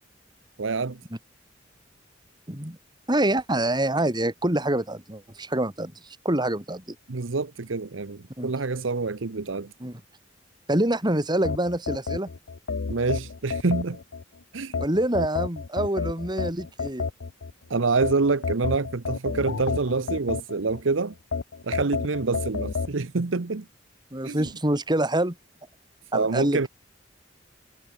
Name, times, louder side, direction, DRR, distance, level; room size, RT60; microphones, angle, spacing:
voice 1, 0.6-1.0 7.1-9.7 12.9-14.0 14.5-14.8 17.7-21.1 21.6-23.7 24.2-24.5 26.1-26.7, right 3 dB, 80° right, 0.9 m, -26 dB
voice 2, 3.1-5.9 6.2-6.9 8.4-8.5 9.8-10.0 10.7-12.3 14.8-17.0 24.1-25.3 26.1-26.7, right 1 dB, 20° right, 3.4 m, -26 dB
sound 1, 11.4-14.2 14.7-17.5 18.0-20.8 21.3-22.9, left 4 dB, 75° left, 0.7 m, -30 dB
head